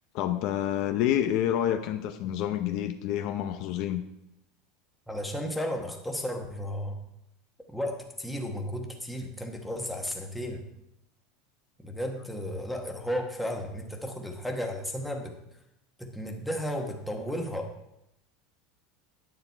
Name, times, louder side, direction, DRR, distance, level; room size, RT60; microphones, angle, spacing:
voice 1, 0.1-4.0, left 11 dB, 50° left, 7 dB, 0.7 m, -28 dB
voice 2, 5.1-7.0 7.7-10.7 11.8-15.3 16.0-17.7, equal, ahead, 2 dB, 1.2 m, -34 dB
9.6 x 8.9 x 4.5 m, 0.84 s
supercardioid pair, 155°, 0 cm